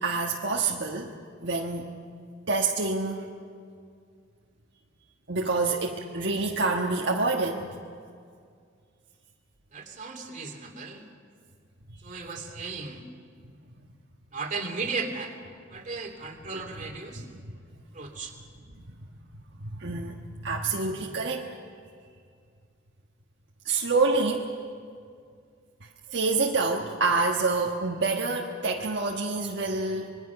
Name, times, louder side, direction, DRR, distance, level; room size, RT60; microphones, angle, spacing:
voice 1, 0.0-1.1 1.4-1.9 2.5-3.3 5.3-7.7 17.1-17.4 18.9-19.1 19.6-21.5 23.6-24.5 26.1-30.2, right 3 dB, 65° right, -1 dB, 1.4 m, -27 dB
voice 2, 9.7-11.0 12.0-13.0 14.3-15.3 15.7-17.2 17.9-18.3, right 4 dB, 40° right, 2 dB, 2.6 m, -35 dB
26.5 x 21.5 x 5.9 m, 2.2 s
head